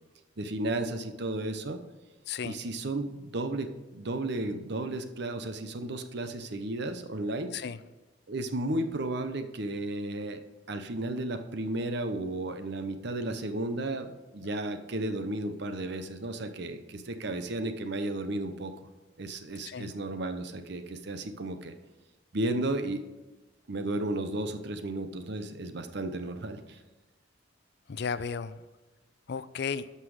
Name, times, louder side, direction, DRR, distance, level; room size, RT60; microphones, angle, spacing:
voice 1, 0.4-1.8 2.4-7.5 8.3-10.4 10.7-18.7 19.2-21.7 22.3-23.0 23.7-26.8, right 2 dB, 60° right, 8 dB, 0.8 m, -33 dB
voice 2, 2.3-2.6 7.5-7.8 19.7-19.9 27.9-28.6 29.3-29.9, left 6 dB, 55° left, 14 dB, 0.4 m, -34 dB
12.5 x 5.6 x 4.9 m, 1.1 s
head